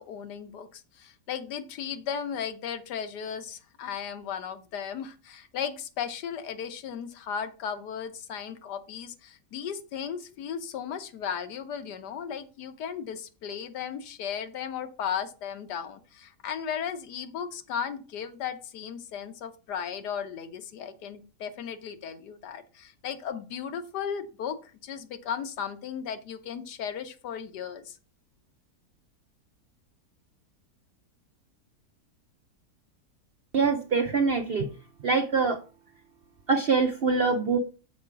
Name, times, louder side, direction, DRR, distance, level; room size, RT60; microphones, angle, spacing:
voice 1, 0.0-28.0, left 8 dB, 80° left, 9 dB, 1.4 m, -36 dB
voice 2, 33.5-34.7 35.0-35.6 36.5-37.6, right 4 dB, 60° right, 4 dB, 0.6 m, -24 dB
6.5 x 4.7 x 5.7 m, 0.34 s
omnidirectional pair, 1.7 m